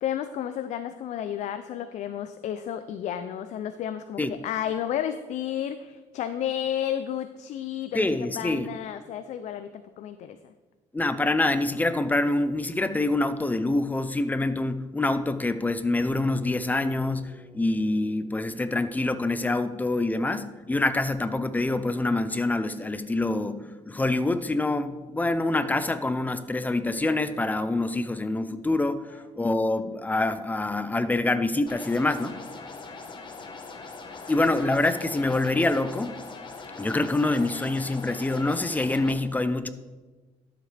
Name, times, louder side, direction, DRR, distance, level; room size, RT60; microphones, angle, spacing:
voice 1, 0.0-10.5 32.8-32.9 34.1-34.3, left 10 dB, 70° left, 10 dB, 0.4 m, -32 dB
voice 2, 7.9-8.7 10.9-32.4 34.3-36.1 36.8-39.7, left 2 dB, 15° left, 11 dB, 0.6 m, -26 dB
sound 1, 16.0-21.8, right 2 dB, 25° right, 1.6 m, -48 dB
sound 2, 31.7-39.1, left 4 dB, 40° left, 1.1 m, -41 dB
12.0 x 7.3 x 3.4 m, 1.3 s
cardioid pair, 95°, 13 cm